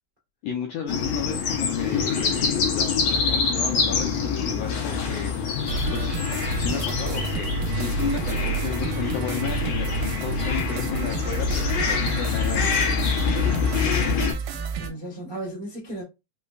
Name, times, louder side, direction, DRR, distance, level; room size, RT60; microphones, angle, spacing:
voice 1, 0.4-6.3 6.6-13.1, left 6 dB, 80° left, 1.5 m, -33 dB
sound 1, 0.9-14.3, left 5 dB, 65° left, 1.9 m, -25 dB
sound 2, 5.7-14.9, right 5 dB, 90° right, 2.1 m, -31 dB
voice 2, 13.8-14.5 14.7-16.0, right 1 dB, 45° right, 0.6 m, -36 dB
5.2 x 2.1 x 2.3 m
omnidirectional pair, 3.5 m